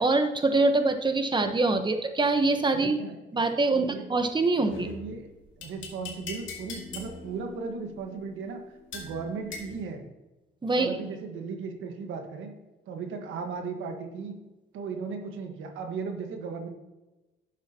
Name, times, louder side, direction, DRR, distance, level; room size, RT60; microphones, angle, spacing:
voice 1, 0.0-3.0 3.3-4.9 10.6-11.0, right 3 dB, 25° right, 7 dB, 1.1 m, -24 dB
voice 2, 2.7-4.1 4.8-5.3 5.6-8.6 8.9-10.1 10.7-12.5 12.9-14.3 14.7-16.7, right 5 dB, 80° right, 4 dB, 1.5 m, -36 dB
sound 1, 4.7-9.8, left 3 dB, 75° left, 2.3 m, -43 dB
10.5 x 7.5 x 2.9 m, 1.1 s
cardioid pair, 90°, 20 cm